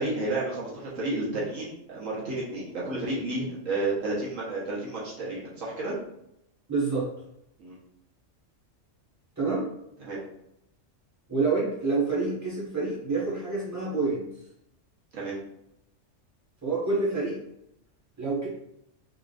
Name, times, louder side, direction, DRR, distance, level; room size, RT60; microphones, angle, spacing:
voice 1, 0.0-6.0 7.6-7.8 10.0-10.2 15.1-15.4, right 2 dB, 80° right, -6 dB, 1.5 m, -31 dB
voice 2, 6.7-7.1 9.4-9.7 11.3-14.3 16.6-17.4 18.2-18.5, right 3 dB, 15° right, -7 dB, 1.4 m, -27 dB
3.7 x 3.6 x 2.5 m, 0.80 s
omnidirectional pair, 1.3 m